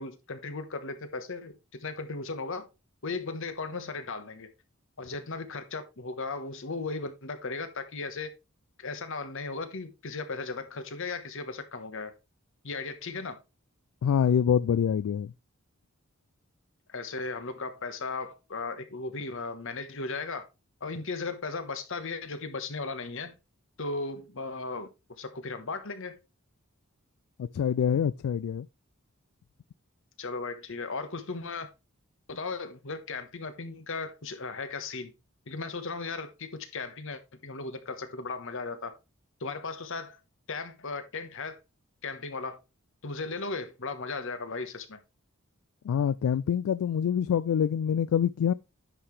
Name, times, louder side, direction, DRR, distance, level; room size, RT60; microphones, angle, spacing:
voice 1, 0.0-2.7 3.0-4.5 5.0-8.3 8.8-12.1 12.6-13.4 16.9-20.5 20.8-23.3 23.8-24.9 25.2-26.1 30.2-31.7 32.3-35.1 35.5-38.9 39.4-40.2 40.5-41.6 42.0-42.6 43.0-45.0, left 3 dB, 65° left, 1.3 m, -36 dB
voice 2, 14.0-15.3 27.4-28.7 45.8-48.5, left 8 dB, 85° left, 0.3 m, -25 dB
9.9 x 5.8 x 3.2 m
head